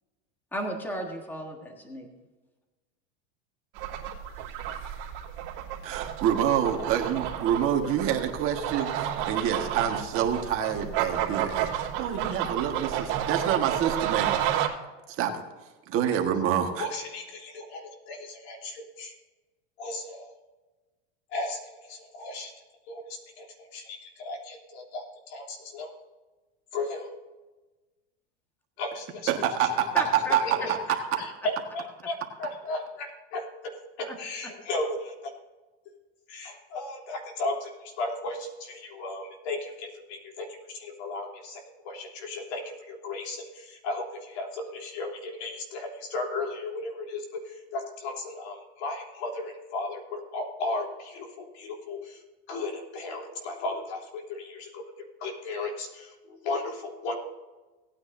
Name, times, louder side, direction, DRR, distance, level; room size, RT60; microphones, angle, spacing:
voice 1, 0.5-2.1 29.9-30.4 34.0-34.1, equal, 5° left, 2 dB, 1.5 m, -34 dB
sound 1, 3.8-14.7, right 11 dB, 55° right, 2.7 m, -31 dB
voice 2, 5.8-8.9 9.3-14.4 15.2-15.3 15.9-16.9 29.3-30.4 30.7-30.8, right 9 dB, 40° right, 4 dB, 1.5 m, -27 dB
voice 3, 16.8-19.1 19.8-20.3 21.3-25.9 26.7-27.1 28.8-29.3 29.6-29.7 30.4-35.3 35.9-36.0 36.3-54.8 55.2-57.1, left 2 dB, 70° left, 1 dB, 3.3 m, -35 dB
18.0 x 9.5 x 2.7 m, 1.2 s
supercardioid pair, 150°, 34 cm